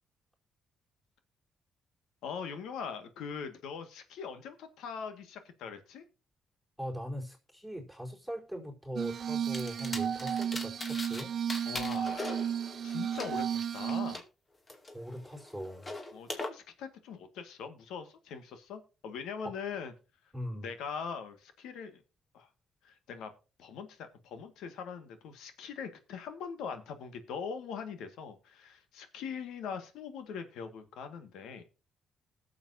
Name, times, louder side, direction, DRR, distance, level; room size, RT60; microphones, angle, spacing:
voice 1, 2.2-6.0 11.7-14.2 16.1-19.9 20.6-22.0 22.3-22.5 22.8-23.3 23.6-31.7, left 6 dB, 85° left, 1.8 m, -42 dB
voice 2, 6.8-11.3 14.9-15.9 19.4-19.5 20.3-20.7, equal, ahead, 4.5 m, -40 dB
Glass, 9.0-14.2, right 8 dB, 50° right, 0.5 m, -33 dB
sound 1, 9.5-11.2 11.5-14.2 14.7-16.5, left 2 dB, 30° left, 2.4 m, -41 dB
20.0 x 7.2 x 2.7 m
cardioid pair, 90°, 0 cm